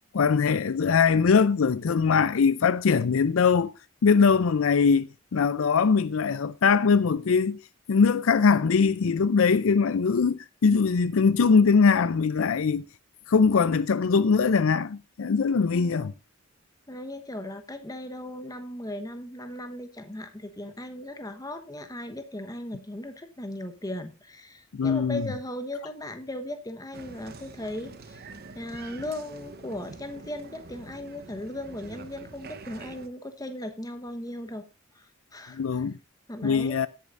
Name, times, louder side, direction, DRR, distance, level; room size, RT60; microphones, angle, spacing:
voice 1, 0.1-3.7 4.0-7.6 7.9-12.8 13.3-16.1 24.7-25.3 35.5-36.0 36.4-36.9, left 5 dB, 65° left, 0.4 m, -22 dB
voice 2, 15.7-16.2 16.9-28.2 28.5-34.7 34.9-35.9 36.3-36.8, left 1 dB, 15° left, 1.1 m, -37 dB
Applause, 26.9-33.1, right 3 dB, 45° right, 0.9 m, -45 dB
17.0 x 8.5 x 2.5 m
head